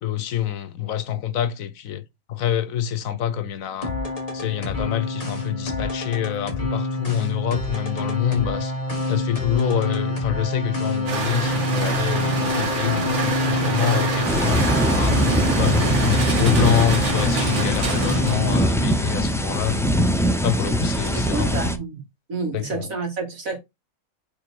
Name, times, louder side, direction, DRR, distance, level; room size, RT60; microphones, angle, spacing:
voice 1, 0.0-2.0 2.3-3.9 4.3-8.7 9.1-15.2 15.6-20.0 20.4-21.6 22.5-22.9, left 10 dB, 75° left, 1.2 m, -26 dB
sound 1, 3.8-18.6, left 1 dB, 25° left, 1.8 m, -27 dB
sound 2, 11.1-18.7, right 3 dB, 60° right, 1.8 m, -27 dB
sound 3, 14.3-21.8, equal, 5° left, 0.4 m, -22 dB
voice 2, 21.1-22.0 22.3-23.6, right 3 dB, 75° right, 2.7 m, -29 dB
5.0 x 4.0 x 4.7 m
omnidirectional pair, 1.4 m